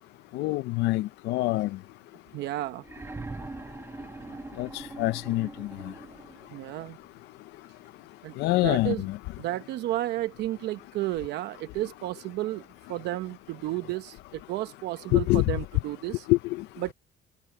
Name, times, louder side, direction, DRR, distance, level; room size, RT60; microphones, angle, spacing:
voice 1, 0.3-1.8 4.6-5.9 8.4-9.2 15.1-15.4 16.3-16.7, left 19 dB, 85° left, 0.6 m, -26 dB
voice 2, 2.3-2.8 6.5-7.0 8.2-8.4 8.6-9.1 9.4-12.6 12.9-16.3 16.8-16.9, right 16 dB, 80° right, 0.9 m, -32 dB
sound 1, 2.8-6.6 7.8-7.9, right 3 dB, 15° right, 1.5 m, -42 dB
cardioid pair, 110°, 17 cm